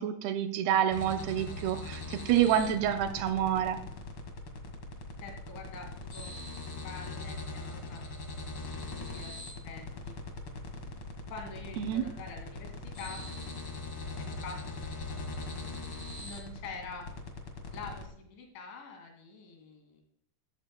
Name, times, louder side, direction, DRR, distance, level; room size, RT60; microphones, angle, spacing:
voice 1, 0.0-3.8 11.8-12.0, right 10 dB, 80° right, 8 dB, 2.3 m, -28 dB
sound 1, 0.9-18.0, left 3 dB, 50° left, 1.5 m, -41 dB
voice 2, 5.2-6.3 6.8-8.0 8.9-10.2 11.3-12.7 13.0-13.2 14.0-14.6 16.2-17.1 17.7-20.0, left 4 dB, 85° left, 3 dB, 4.8 m, -45 dB
14.5 x 13.0 x 2.2 m, 0.68 s
omnidirectional pair, 5.2 m